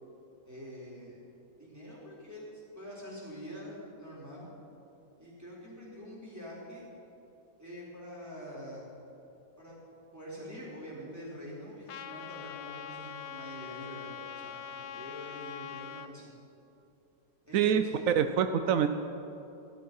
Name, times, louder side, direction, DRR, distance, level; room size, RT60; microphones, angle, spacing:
voice 1, 0.4-1.2 1.6-4.5 5.2-6.9 7.6-8.9 9.6-9.8 10.1-16.3 17.5-18.2, equal, 10° right, -7 dB, 4.3 m, -45 dB
Trumpet, 11.9-16.1, left 8 dB, 80° left, 1.4 m, -43 dB
voice 2, 17.5-17.8 18.2-18.9, right 8 dB, 80° right, 9 dB, 0.7 m, -25 dB
16.0 x 12.5 x 5.5 m, 2.8 s
omnidirectional pair, 2.1 m